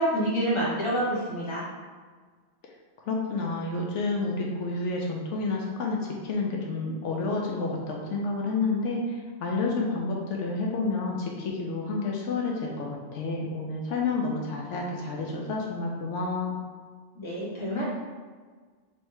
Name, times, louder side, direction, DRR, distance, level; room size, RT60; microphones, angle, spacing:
voice 1, 0.0-1.6 17.1-17.8, right 1 dB, 25° left, -7 dB, 1.1 m, -27 dB
voice 2, 3.1-16.6, left 3 dB, 75° left, -1 dB, 0.9 m, -30 dB
3.1 x 3.1 x 4.6 m, 1.5 s
omnidirectional pair, 1.3 m